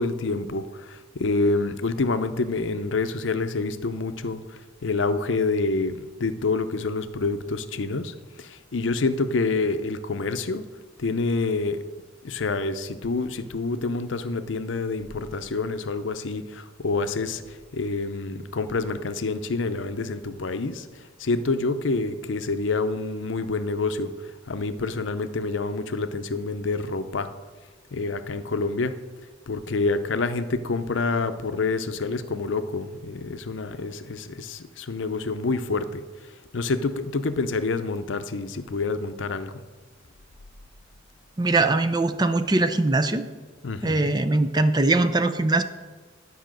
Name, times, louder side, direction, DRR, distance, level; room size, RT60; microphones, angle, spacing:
voice 1, 0.0-10.6 11.0-11.8 12.2-27.3 27.9-29.0 29.5-39.6 43.6-44.1, left 3 dB, 70° left, 10 dB, 0.6 m, -27 dB
voice 2, 41.4-43.3 43.8-45.6, right 2 dB, 20° right, 10 dB, 0.5 m, -21 dB
10.5 x 5.6 x 7.5 m, 1.4 s
head